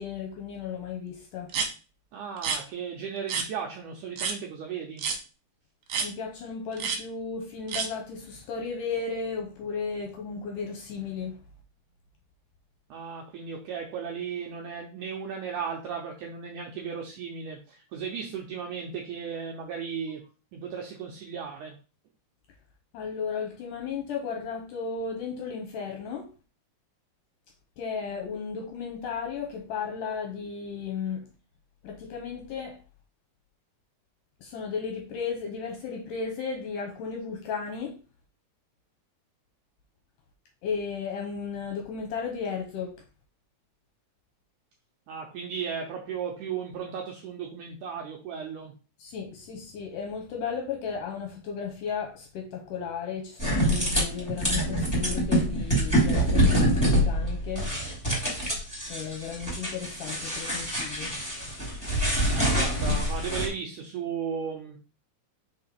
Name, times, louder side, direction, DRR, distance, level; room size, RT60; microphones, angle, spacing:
voice 1, 0.0-1.5 6.0-11.4 22.9-26.3 27.8-31.3 31.8-32.8 34.4-38.0 40.6-43.0 49.0-57.7 58.9-61.1, left 5 dB, 75° left, 2.1 m, -34 dB
sound 1, 1.5-1.7 2.4-2.6 3.3-3.5 4.2-4.4 5.0-5.2 5.9-6.1 6.8-7.0 7.7-7.9, right 5 dB, 65° right, 2.1 m, -29 dB
voice 2, 2.1-5.1 12.9-20.2 20.5-21.8 45.1-48.7 62.3-64.8, right 7 dB, 90° right, 1.8 m, -35 dB
sound 2, 53.4-63.5, equal, 10° left, 1.2 m, -26 dB
5.5 x 3.9 x 4.3 m
omnidirectional pair, 4.6 m